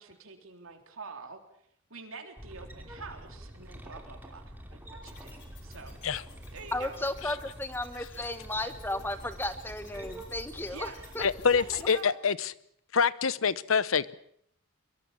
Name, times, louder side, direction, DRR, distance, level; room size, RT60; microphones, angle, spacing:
voice 1, 0.0-1.4 1.9-4.4 4.7-6.0 6.5-6.9 10.7-11.1 11.5-12.1, right 4 dB, 80° right, 4 dB, 3.7 m, -46 dB
sound 1, 2.4-11.9, right 1 dB, 10° right, 3.0 m, -47 dB
sound 2, 2.4-4.7 5.5-7.8 8.8-11.0, equal, 40° right, 2.9 m, -54 dB
sound 3, 5.1-12.0, left 8 dB, 55° left, 7.5 m, -56 dB
voice 2, 6.7-10.9 11.1-11.2 11.8-11.9, left 1 dB, 10° left, 10 dB, 1.2 m, -34 dB
voice 3, 11.2-12.5 12.9-14.1, left 6 dB, 75° left, 18 dB, 0.9 m, -26 dB
23.5 x 22.5 x 7.1 m, 0.66 s
head